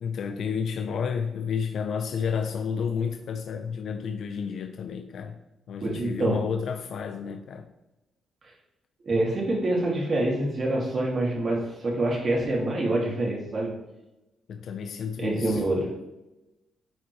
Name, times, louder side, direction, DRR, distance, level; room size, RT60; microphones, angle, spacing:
voice 1, 0.0-5.4 5.7-7.7 14.5-15.6, left 6 dB, 65° left, 6 dB, 0.6 m, -31 dB
voice 2, 5.8-6.4 9.0-13.7 15.2-15.9, right 1 dB, 45° right, -2 dB, 2.5 m, -26 dB
11.5 x 4.3 x 3.2 m, 0.97 s
cardioid pair, 95°, 0 cm